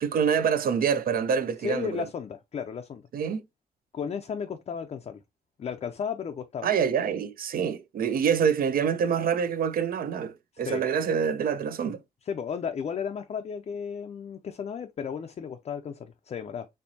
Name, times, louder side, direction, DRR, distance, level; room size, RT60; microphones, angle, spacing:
voice 1, 0.0-2.1 3.1-3.4 6.6-12.0, right 7 dB, 65° right, 0.6 m, -26 dB
voice 2, 1.6-3.0 3.9-5.2 5.6-6.7 10.6-10.8 12.2-16.7, left 7 dB, 40° left, 0.4 m, -34 dB
4.4 x 3.0 x 2.7 m
cardioid pair, 110°, 16 cm